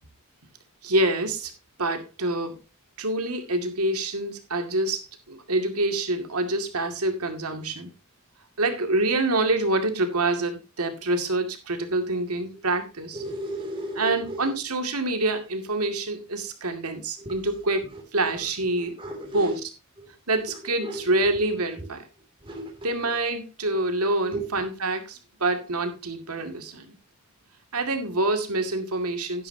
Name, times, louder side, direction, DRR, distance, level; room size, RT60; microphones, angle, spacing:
voice 1, 0.8-1.5 1.8-2.6 3.0-7.9 8.6-13.2 14.0-17.8 18.1-19.0 19.3-19.6 20.3-22.0 22.8-26.9 27.7-29.5, right 2 dB, 90° right, 6 dB, 2.3 m, -26 dB
voice 2, 13.1-14.6 17.2-17.4 17.9-18.0 18.7-19.6 20.0-20.1 20.8-21.4 22.4-22.9 24.3-24.5, equal, 25° right, 1 dB, 2.8 m, -34 dB
11.5 x 10.5 x 2.8 m, 0.28 s
head